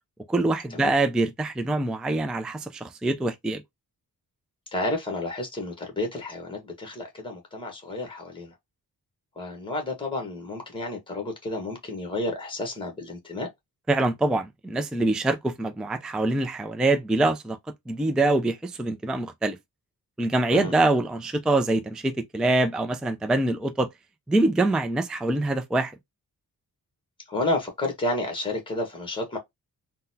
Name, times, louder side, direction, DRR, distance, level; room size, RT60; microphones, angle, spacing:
voice 1, 0.3-3.6 13.9-17.6 17.9-19.6 20.2-23.9 24.3-25.9, right 2 dB, ahead, 0.3 m, -24 dB
voice 2, 4.7-8.5 9.4-13.5 20.5-20.7 27.3-29.4, left 2 dB, 15° left, 1.1 m, -31 dB
3.8 x 2.1 x 2.7 m
wide cardioid pair, 135°, 36 cm